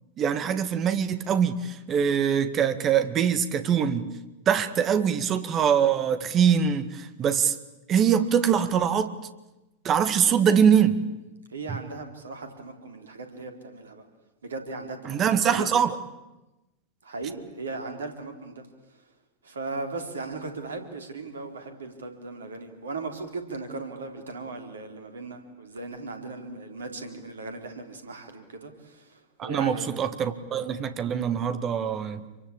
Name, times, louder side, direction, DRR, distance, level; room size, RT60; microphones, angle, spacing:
voice 1, 0.2-4.1 4.5-7.6 7.9-9.1 9.8-11.0 11.7-11.8 15.1-16.0 29.4-32.2, right 8 dB, 30° right, 11 dB, 2.0 m, -23 dB
voice 2, 11.5-14.0 14.4-15.2 17.0-18.7 19.4-29.9, right 3 dB, 70° right, 6 dB, 4.1 m, -37 dB
28.0 x 24.5 x 8.6 m, 1.0 s
figure-of-eight pair, 90°, 0 cm